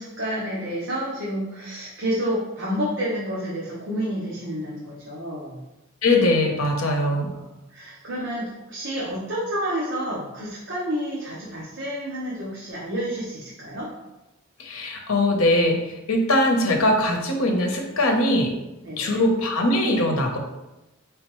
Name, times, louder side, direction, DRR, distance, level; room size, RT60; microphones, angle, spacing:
voice 1, 0.0-5.6 7.0-13.9 18.8-19.2, equal, 60° right, -6 dB, 0.9 m, -30 dB
voice 2, 6.0-7.3 14.6-18.5 19.0-20.4, left 1 dB, 85° left, 2 dB, 0.8 m, -21 dB
4.4 x 3.5 x 3.0 m, 0.98 s
head